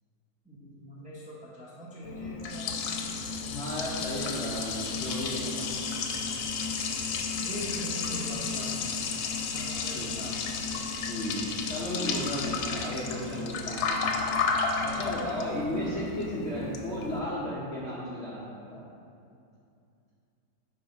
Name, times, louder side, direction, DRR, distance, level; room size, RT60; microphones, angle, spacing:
voice 1, 0.4-2.7 7.4-9.0 9.5-10.6 13.3-13.4 15.8-16.0, equal, 5° right, -7 dB, 0.8 m, -42 dB
Liquid, 2.0-17.2, left 5 dB, 85° left, 1.4 m, -32 dB
voice 2, 3.5-5.7 9.9-10.3 11.1-14.3 14.8-18.9, equal, 50° left, -7 dB, 0.9 m, -35 dB
10.0 x 3.9 x 4.0 m, 2.5 s
omnidirectional pair, 2.1 m